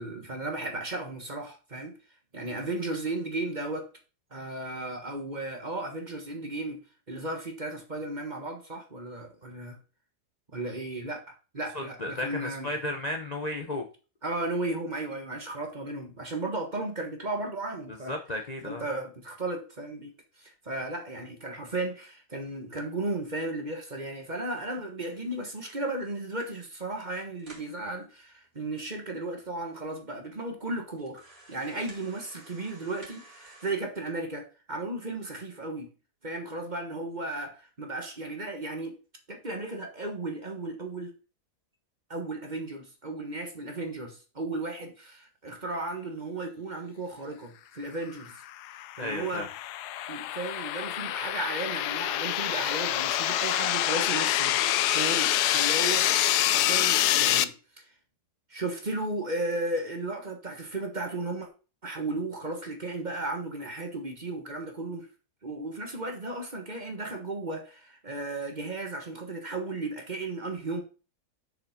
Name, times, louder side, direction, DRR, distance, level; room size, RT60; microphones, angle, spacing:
voice 1, 0.0-2.0 2.3-3.9 4.3-6.8 7.1-9.8 10.5-11.2 11.5-12.7 14.2-18.1 18.6-20.1 20.4-31.2 31.5-35.9 36.2-39.0 39.3-41.1 42.1-48.4 49.0-49.4 50.1-57.8 58.5-61.5 61.8-65.1 65.4-70.8, right 2 dB, 30° right, 1.4 m, -35 dB
voice 2, 11.7-13.8 17.9-18.9 49.0-49.5, left 1 dB, 35° left, 0.7 m, -34 dB
sound 1, 25.1-26.7 27.1-27.2 27.4-27.8 28.4-28.5 28.8-28.9 29.6-29.7 30.1-30.2 31.0-33.7, right 2 dB, 55° right, 3.0 m, -53 dB
sound 2, 48.5-57.4, left 13 dB, 80° left, 1.1 m, -26 dB
6.7 x 5.4 x 5.1 m
omnidirectional pair, 1.8 m